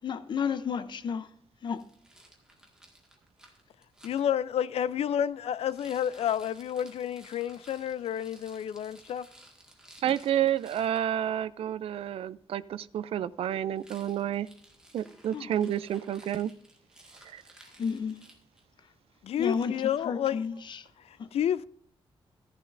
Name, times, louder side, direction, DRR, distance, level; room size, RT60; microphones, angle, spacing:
voice 1, 0.0-1.3 1.6-1.8 15.3-15.5 17.8-18.2 19.4-19.7 20.0-20.9 21.2-21.3, left 6 dB, 50° left, 0.6 m, -32 dB
Rattle, 1.7-4.2 5.6-11.0 13.7-18.7, right 1 dB, 5° right, 1.7 m, -56 dB
voice 2, 4.0-9.3 19.2-20.4 21.1-21.6, left 9 dB, 85° left, 0.5 m, -30 dB
voice 3, 10.0-14.5 14.9-16.5 17.3-17.4, right 10 dB, 70° right, 0.4 m, -30 dB
14.5 x 10.5 x 2.6 m
wide cardioid pair, 180°, 10 cm